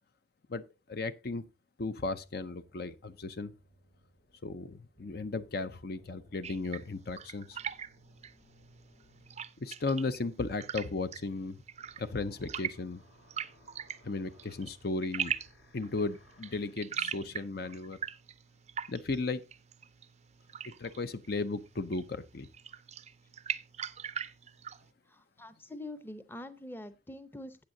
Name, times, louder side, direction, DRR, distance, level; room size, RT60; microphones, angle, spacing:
voice 1, 0.9-1.4 1.8-3.5 4.4-7.6 9.6-11.6 12.0-13.0 14.0-15.3 15.7-18.0 18.9-19.4 20.6-22.5, left 3 dB, 50° left, 0.6 m, -35 dB
sound 1, 2.2-9.6 9.9-17.4, left 1 dB, 75° left, 4.4 m, -63 dB
sound 2, 6.4-24.9, right 8 dB, 35° right, 0.5 m, -42 dB
voice 2, 25.1-27.6, left 1 dB, 10° left, 0.7 m, -45 dB
15.5 x 8.6 x 2.7 m
head